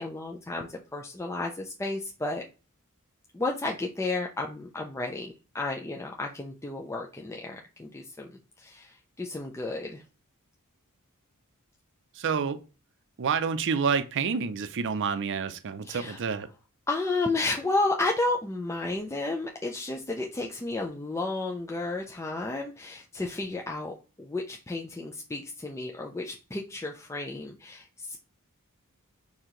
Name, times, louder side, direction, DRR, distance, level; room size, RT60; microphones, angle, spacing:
voice 1, 0.0-2.4 3.3-8.3 8.6-10.0 15.8-16.2 16.9-28.2, left 2 dB, 10° left, 0.4 m, -32 dB
voice 2, 12.2-12.6 13.2-16.5, right 6 dB, 55° right, 0.5 m, -28 dB
4.5 x 2.8 x 3.7 m
head